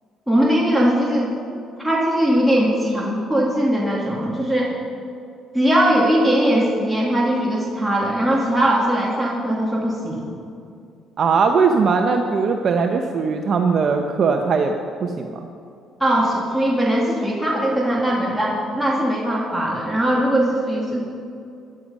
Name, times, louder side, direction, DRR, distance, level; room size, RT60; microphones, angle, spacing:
voice 1, 0.3-1.3 1.8-4.7 5.5-10.3 16.0-21.0, right 1 dB, ahead, -4 dB, 2.1 m, -20 dB
voice 2, 11.2-14.7 15.0-15.3, right 5 dB, 50° right, 4 dB, 0.8 m, -19 dB
14.5 x 11.0 x 5.4 m, 2.5 s
cardioid pair, 90°, 0 cm